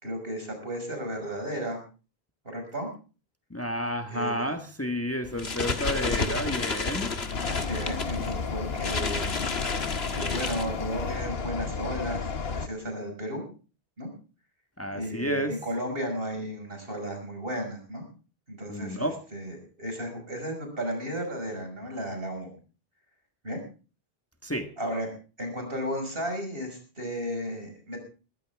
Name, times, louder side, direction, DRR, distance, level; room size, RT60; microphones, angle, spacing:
voice 1, 0.0-1.8 2.4-2.9 4.1-4.5 7.7-9.4 10.1-13.4 14.0-14.1 14.9-18.0 18.5-22.6 23.4-23.6 24.8-25.1 25.4-28.0, equal, 65° right, 4 dB, 6.1 m, -34 dB
voice 2, 3.5-7.1 14.8-15.6 18.7-19.2 24.4-24.7, equal, 15° left, 6 dB, 1.5 m, -31 dB
sound 1, 5.2-11.2, left 4 dB, 90° left, 1.9 m, -32 dB
sound 2, 7.3-12.7, left 5 dB, 75° left, 1.4 m, -32 dB
21.0 x 15.5 x 3.5 m, 0.35 s
omnidirectional pair, 1.0 m